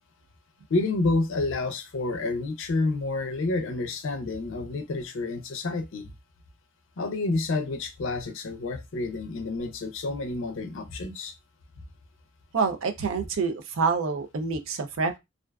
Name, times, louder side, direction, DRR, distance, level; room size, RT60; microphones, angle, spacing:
voice 1, 0.7-6.1 7.0-11.3, left 2 dB, 75° left, 0.5 m, -29 dB
voice 2, 12.5-15.2, right 5 dB, 80° right, 0.4 m, -27 dB
2.4 x 2.2 x 2.2 m
head